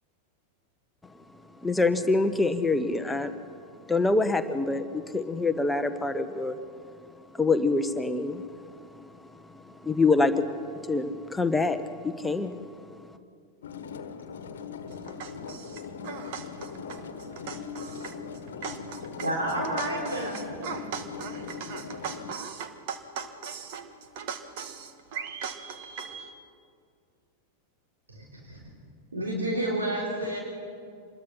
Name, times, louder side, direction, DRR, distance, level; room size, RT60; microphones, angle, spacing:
voice 1, 1.6-3.4 3.9-6.6 7.3-12.9, left 3 dB, 10° left, 8 dB, 1.0 m, -26 dB
sound 1, 13.6-22.3, left 5 dB, 60° left, 1.3 m, -40 dB
voice 2, 15.2-15.7 16.0-17.0 17.5-18.2 18.6-19.0 19.8-19.9 20.6-23.9 24.2-26.3, right 6 dB, 50° right, 8 dB, 2.1 m, -39 dB
voice 3, 19.2-20.4 28.1-28.6 29.1-30.4, right 1 dB, 75° right, -2 dB, 3.6 m, -30 dB
26.0 x 21.0 x 5.8 m, 2.3 s
figure-of-eight pair, 90°, 0 cm